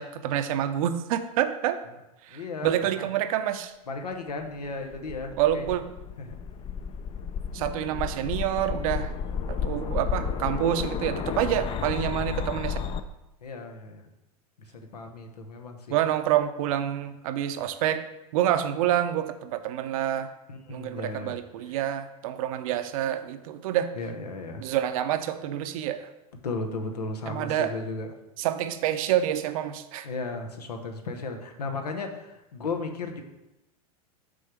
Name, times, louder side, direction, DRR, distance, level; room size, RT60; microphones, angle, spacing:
voice 1, 0.0-1.8 2.2-3.7 5.4-5.8 7.5-9.1 9.5-12.8 15.9-18.0 18.3-20.3 20.7-23.9 24.6-26.1 27.3-27.7 28.4-30.1, right 11 dB, 65° right, 9 dB, 0.6 m, -27 dB
voice 2, 2.3-3.1 3.9-5.7 6.2-6.4 13.4-14.0 14.7-16.0 20.5-21.4 21.7-21.8 23.9-24.6 26.4-28.1 30.0-33.2, left 3 dB, 90° left, 4 dB, 0.9 m, -35 dB
sound 1, 4.7-13.0, left 7 dB, 30° left, 0.4 m, -32 dB
6.4 x 3.8 x 5.8 m, 0.95 s
hypercardioid pair, 100°, 20 cm